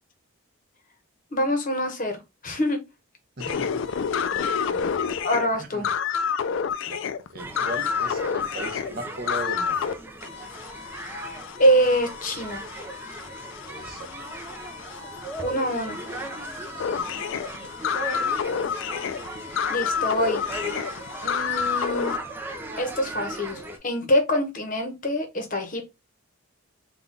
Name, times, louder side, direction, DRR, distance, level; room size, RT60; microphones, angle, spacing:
voice 1, 1.3-2.8 5.2-5.8 11.6-12.6 15.4-16.0 19.5-20.4 21.2-22.2 22.8-25.9, equal, 40° left, 0.9 m, -25 dB
sound 1, 3.4-9.9 10.2-22.2, left 7 dB, 60° left, 0.3 m, -29 dB
voice 2, 3.4-5.3 5.6-5.9 6.9-7.0 7.3-9.9 13.6-14.1 16.7-17.0, right 1 dB, 45° right, 0.8 m, -38 dB
sound 2, 7.4-23.8, right 2 dB, 10° right, 0.5 m, -38 dB
3.6 x 2.3 x 3.8 m
head